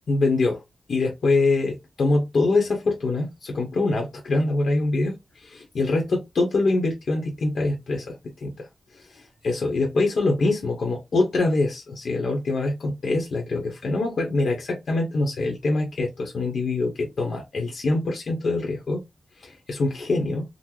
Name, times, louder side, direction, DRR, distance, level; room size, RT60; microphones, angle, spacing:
voice 1, 0.1-0.6 0.9-8.7 9.0-19.0 19.4-20.4, left 2 dB, 60° left, 0.8 m, -24 dB
3.8 x 2.0 x 2.9 m
wide cardioid pair, 140°, 0 cm